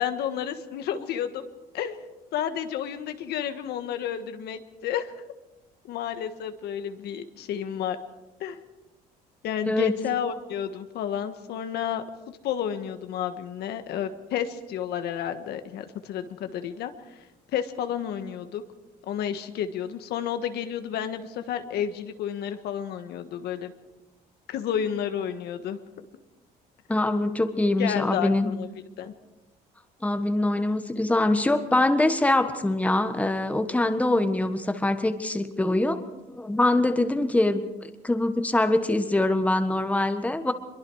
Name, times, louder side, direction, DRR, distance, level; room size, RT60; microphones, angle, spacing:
voice 1, 0.0-1.5 1.7-2.0 2.3-5.1 5.9-8.0 8.4-8.6 9.4-16.9 17.5-18.6 19.1-23.7 24.5-25.8 27.8-28.7 29.0-29.1, left 9 dB, 75° left, 8 dB, 1.6 m, -31 dB
voice 2, 26.9-28.5 30.0-36.0 36.3-40.5, left 2 dB, 10° left, 8 dB, 1.4 m, -24 dB
23.5 x 22.5 x 4.9 m, 1.0 s
cardioid pair, 110°, 17 cm